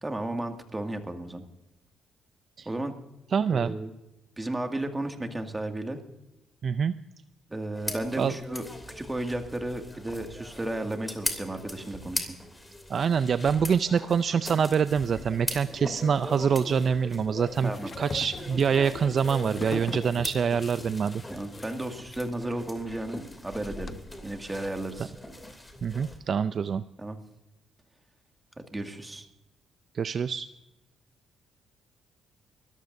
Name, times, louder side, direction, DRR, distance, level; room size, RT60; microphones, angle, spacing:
voice 1, 0.0-1.4 2.7-2.9 3.5-3.9 4.4-6.0 7.5-12.4 17.6-17.9 21.3-25.1 27.0-27.2 28.7-29.2, right 1 dB, 15° right, 4 dB, 2.1 m, -34 dB
voice 2, 3.3-3.8 6.6-6.9 8.2-8.3 12.9-17.7 18.0-21.2 25.8-26.8 29.9-30.5, right 6 dB, 50° right, 13 dB, 0.4 m, -25 dB
sound 1, 7.7-26.2, left 1 dB, 15° left, 2.8 m, -40 dB
sound 2, 16.9-23.9, left 4 dB, 35° left, 1.0 m, -43 dB
sound 3, 18.3-21.2, left 4 dB, 80° left, 3.9 m, -48 dB
25.5 x 14.5 x 2.7 m, 0.96 s
cardioid pair, 90°, 0 cm